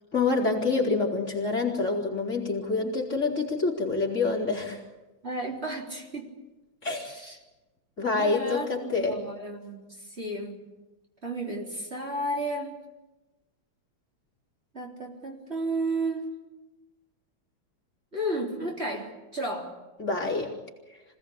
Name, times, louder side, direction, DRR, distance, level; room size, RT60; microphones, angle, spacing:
voice 1, 0.1-4.8 6.8-7.1 8.0-9.2 20.0-20.5, left 3 dB, 40° left, -1 dB, 4.0 m, -27 dB
voice 2, 5.2-6.3 6.9-7.4 8.2-10.7 11.2-12.8 14.7-16.3 18.1-19.7, right 1 dB, 30° right, -1 dB, 3.9 m, -33 dB
26.0 x 18.0 x 8.6 m, 1.1 s
omnidirectional pair, 2.1 m